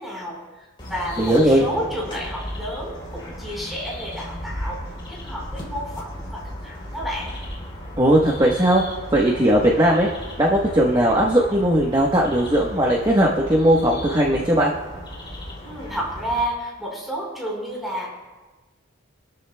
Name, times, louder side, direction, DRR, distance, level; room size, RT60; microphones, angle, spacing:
voice 1, 0.0-7.4 9.2-9.7 15.6-18.1, equal, ahead, -5 dB, 4.1 m, -31 dB
sound 1, 0.8-16.4, left 1 dB, 25° left, 3.3 m, -36 dB
voice 2, 1.2-1.6 8.0-8.8 9.1-10.1 10.4-14.7, right 1 dB, 20° right, -2 dB, 1.1 m, -18 dB
25.5 x 12.5 x 2.2 m, 1.2 s
head